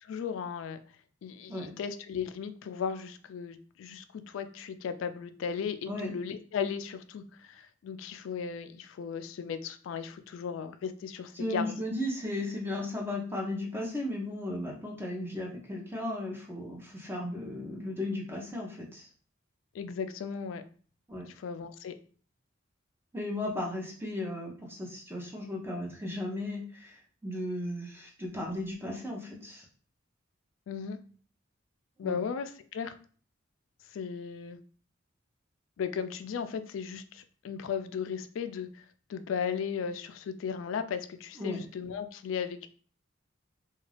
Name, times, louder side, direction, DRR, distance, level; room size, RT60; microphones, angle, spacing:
voice 1, 0.0-0.8 1.2-11.7 19.7-20.6 21.3-21.9 30.7-31.0 32.0-32.9 33.9-34.6 35.8-38.8 39.1-42.7, left 6 dB, 75° left, 10 dB, 0.3 m, -36 dB
voice 2, 11.3-19.1 21.1-21.3 23.1-29.6 32.0-32.2 41.4-41.6, left 1 dB, 10° right, -1 dB, 0.6 m, -35 dB
2.4 x 2.3 x 3.2 m, 0.43 s
head